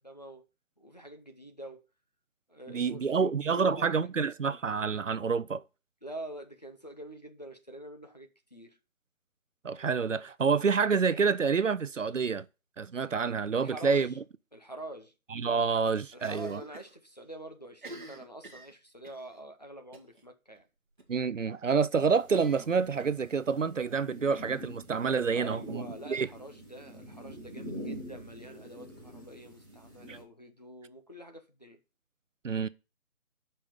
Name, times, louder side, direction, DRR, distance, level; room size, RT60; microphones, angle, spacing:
voice 1, 0.0-0.5 0.8-1.8 2.5-3.9 6.0-8.8 13.6-14.2 14.5-15.1 16.1-20.6 25.3-31.8, right 1 dB, 30° left, 0.8 m, -46 dB
voice 2, 2.7-5.6 9.6-12.4 12.8-14.1 15.3-16.6 21.1-26.3 30.1-30.2 32.4-32.7, right 5 dB, 65° right, 0.6 m, -28 dB
Cough, 16.2-17.0 17.2-17.3 17.7-19.3 19.9-20.2 20.5-20.6 21.0-21.1 22.3-23.6, right 2 dB, 35° right, 1.5 m, -49 dB
sound 1, 22.0-30.2, equal, 15° left, 1.4 m, -46 dB
8.6 x 5.5 x 7.0 m
figure-of-eight pair, 180°, 42 cm